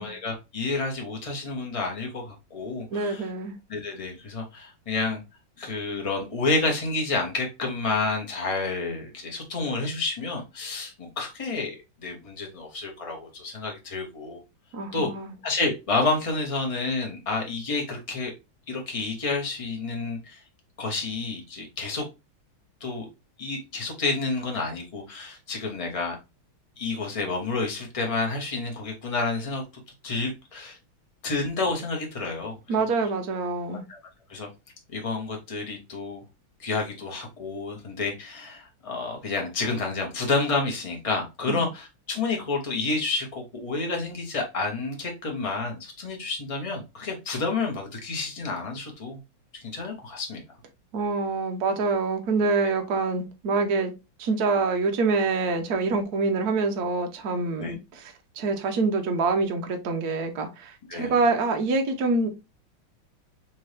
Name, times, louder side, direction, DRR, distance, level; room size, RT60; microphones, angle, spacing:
voice 1, 0.0-3.3 3.7-5.2 5.6-14.4 14.9-15.1 15.4-18.3 18.7-20.4 20.8-22.0 22.8-23.1 23.4-26.2 26.8-29.6 30.0-30.8 31.2-32.6 33.9-34.0 34.3-34.5 34.9-36.2 36.6-49.2 49.5-50.4 52.6-52.7 57.6-57.7 60.9-61.1, left 3 dB, 30° left, 0.6 m, -29 dB
voice 2, 2.9-3.5 14.7-15.3 32.7-33.8 41.5-41.7 50.9-53.9 54.2-62.3, right 3 dB, 60° right, 1.1 m, -26 dB
4.2 x 2.9 x 3.2 m
omnidirectional pair, 2.3 m